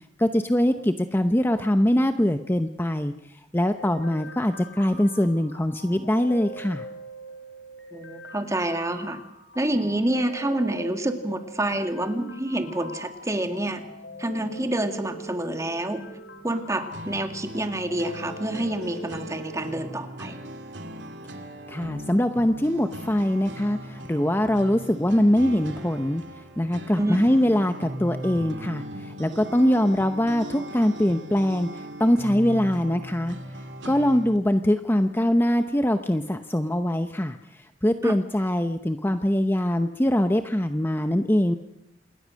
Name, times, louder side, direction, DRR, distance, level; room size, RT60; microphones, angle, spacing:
voice 1, 0.2-3.1 3.5-6.9 21.7-26.2 26.6-33.4 33.8-41.6, equal, 10° left, 8 dB, 0.8 m, -23 dB
sound 1, 3.8-19.8, right 1 dB, 70° left, 3.4 m, -43 dB
voice 2, 7.9-9.2 9.6-13.8 14.2-16.1 16.4-20.4 27.0-27.2 38.0-38.2, right 1 dB, 20° right, 6 dB, 2.2 m, -28 dB
sound 2, 13.6-21.4, equal, 35° left, 7.4 m, -52 dB
sound 3, 16.9-34.4, right 1 dB, 80° right, 2.5 m, -39 dB
27.5 x 20.5 x 6.4 m, 0.83 s
head